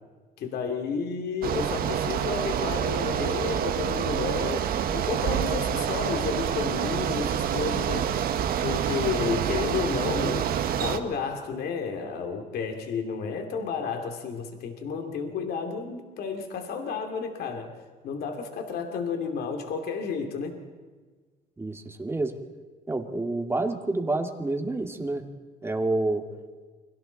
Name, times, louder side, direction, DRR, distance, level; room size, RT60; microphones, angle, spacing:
voice 1, 0.4-4.7 4.9-8.1 8.6-10.5 10.8-17.7 18.0-20.6, left 5 dB, 70° left, 4 dB, 2.8 m, -31 dB
Bicycle, 1.4-11.0, right 9 dB, 65° right, 1.5 m, -27 dB
voice 2, 21.6-22.3 22.9-25.2 25.6-26.2, right 2 dB, 15° right, 4 dB, 2.3 m, -28 dB
29.5 x 23.5 x 4.1 m, 1.4 s
cardioid pair, 110°, 17 cm